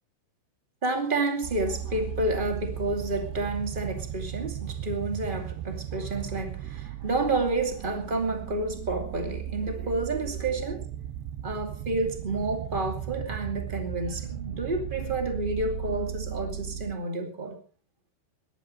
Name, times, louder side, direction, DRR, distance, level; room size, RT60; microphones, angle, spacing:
voice 1, 0.8-10.9 11.4-17.6, right 2 dB, 55° right, 0.5 m, -30 dB
sound 1, 1.4-17.0, right 10 dB, 80° right, 2.6 m, -36 dB
22.0 x 17.0 x 3.2 m
omnidirectional pair, 5.8 m